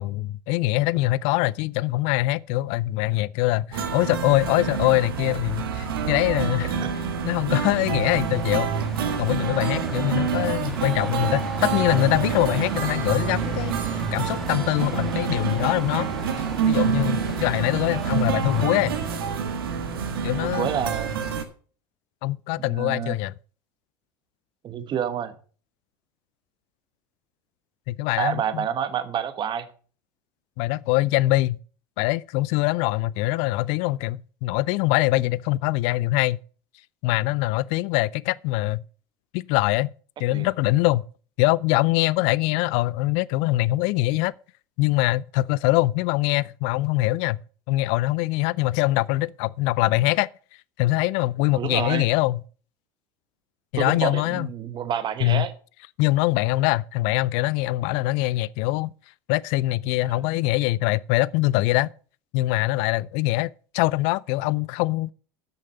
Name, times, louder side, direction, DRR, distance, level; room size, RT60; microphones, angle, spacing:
voice 1, 0.0-6.8 7.2-8.7 9.2-13.7 14.1-16.1 16.7-19.0 20.2-20.7 22.2-23.3 27.9-28.6 30.6-31.6 32.0-36.4 37.0-38.8 39.3-39.9 40.2-41.1 41.4-44.3 44.8-47.4 47.7-50.3 50.8-52.4 53.7-54.5 55.2-55.5 56.0-58.9 59.3-61.9 62.3-65.1, left 18 dB, 60° left, 0.4 m, -23 dB
sound 1, 3.7-21.4, right 6 dB, 85° right, 1.5 m, -27 dB
sound 2, 7.6-19.2, equal, ahead, 1.7 m, -38 dB
voice 2, 20.4-21.3 22.6-23.1 24.6-25.4 28.2-29.7 40.3-40.5 51.5-52.1 53.8-55.5 60.1-60.2, right 9 dB, 40° right, 1.3 m, -29 dB
8.7 x 6.6 x 6.8 m
hypercardioid pair, 85°, 12 cm